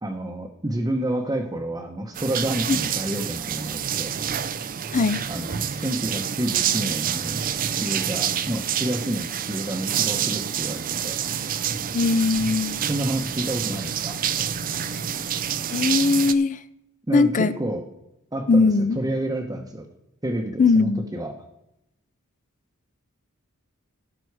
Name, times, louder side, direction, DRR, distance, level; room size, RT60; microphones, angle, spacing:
voice 1, 0.0-4.2 5.3-11.3 12.8-14.2 17.1-17.8 18.3-19.9 20.2-21.4, right 1 dB, 15° right, 0.9 m, -29 dB
sound 1, 2.1-16.3, right 9 dB, 40° right, 0.5 m, -28 dB
voice 2, 4.9-5.2 11.9-12.8 15.7-16.6 17.1-17.5 18.5-19.0 20.6-21.1, left 4 dB, 35° left, 0.5 m, -20 dB
17.0 x 6.1 x 4.7 m
head